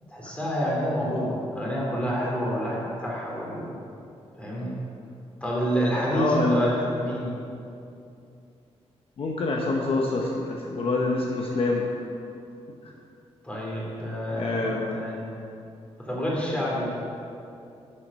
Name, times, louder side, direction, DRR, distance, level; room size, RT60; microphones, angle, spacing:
voice 1, 0.1-3.8 4.4-4.8 5.4-7.3 13.4-15.3 16.0-16.9, equal, 10° left, -4 dB, 2.9 m, -28 dB
voice 2, 5.9-6.7 9.2-11.8 14.3-15.0, left 2 dB, 55° left, -1 dB, 1.0 m, -26 dB
12.5 x 7.7 x 5.4 m, 2.6 s
wide cardioid pair, 160°, 11 cm